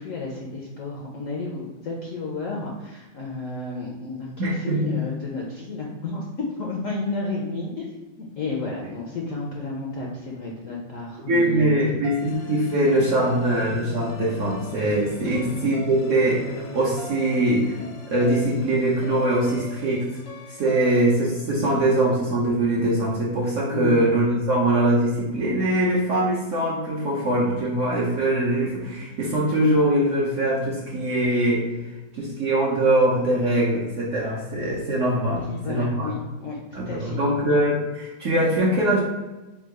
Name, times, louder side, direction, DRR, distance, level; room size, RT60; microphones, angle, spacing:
voice 1, 0.0-6.3 6.6-11.9 15.2-15.4 23.7-23.9 35.3-37.2, left 3 dB, 65° left, -2 dB, 0.8 m, -32 dB
voice 2, 4.4-4.9 11.3-17.8 18.1-20.1 20.6-31.6 32.1-36.1 36.7-39.0, right 1 dB, 65° right, -4 dB, 0.8 m, -22 dB
sound 1, 12.0-22.3, left 4 dB, 90° left, 1.3 m, -40 dB
3.7 x 2.3 x 4.5 m, 1.1 s
omnidirectional pair, 1.9 m